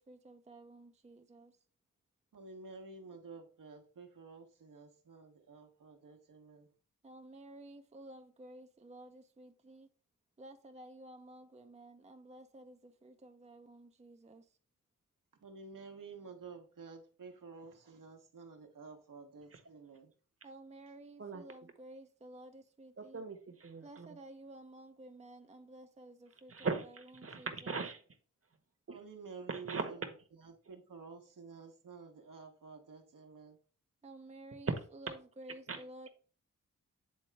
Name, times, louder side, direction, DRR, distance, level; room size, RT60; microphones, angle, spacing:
voice 1, 0.0-1.6 7.0-9.9 10.4-14.6 20.4-23.2 23.8-27.8 34.0-36.1, right 1 dB, 20° right, 0.6 m, -53 dB
voice 2, 2.3-6.7 15.4-20.1 28.9-30.1 30.4-33.6, right 4 dB, 70° right, 1.2 m, -51 dB
voice 3, 23.0-24.2 26.5-28.0 28.9-29.0 29.5-29.9 34.7-34.8 35.7-36.1, right 4 dB, 45° right, 1.2 m, -39 dB
8.6 x 3.6 x 3.4 m
cardioid pair, 50°, 33 cm